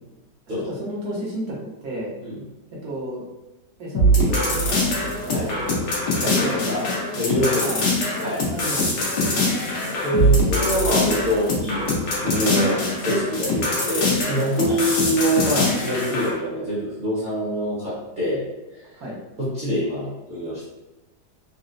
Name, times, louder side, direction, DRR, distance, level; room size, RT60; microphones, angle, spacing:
voice 1, 0.5-2.1 2.7-3.2 3.8-5.8 6.4-6.9 7.6-7.8 8.5-9.1 14.6-14.8 18.9-19.2, right 1 dB, 70° right, -4 dB, 1.4 m, -32 dB
sound 1, 3.9-16.3, left 1 dB, 85° left, 1.4 m, -23 dB
voice 2, 6.2-7.8 8.2-8.5 9.1-11.9 12.2-18.4 18.7-19.0 19.4-20.7, equal, 35° right, -9 dB, 0.9 m, -25 dB
4.1 x 2.1 x 2.5 m, 1.0 s
omnidirectional pair, 1.7 m